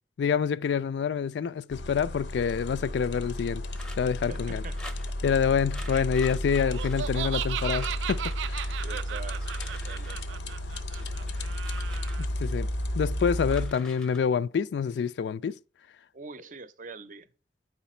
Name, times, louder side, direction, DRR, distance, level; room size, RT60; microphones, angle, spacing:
voice 1, 0.2-3.6 4.0-4.6 5.2-8.7 12.2-12.7 12.9-15.6, left 6 dB, 70° left, 0.3 m, -27 dB
sound 1, 1.7-13.7, equal, 90° left, 0.7 m, -33 dB
sound 2, 3.7-4.2 4.8-5.4 5.7-7.5 7.7-8.4 9.2-10.4 10.9-12.6 13.0-14.2, left 2 dB, 5° left, 0.6 m, -48 dB
voice 2, 4.3-5.0 5.8-6.1 8.8-11.3 16.1-17.3, right 4 dB, 45° right, 0.6 m, -45 dB
Laughter, 6.6-12.2, right 11 dB, 90° right, 0.3 m, -36 dB
8.1 x 4.9 x 4.2 m
head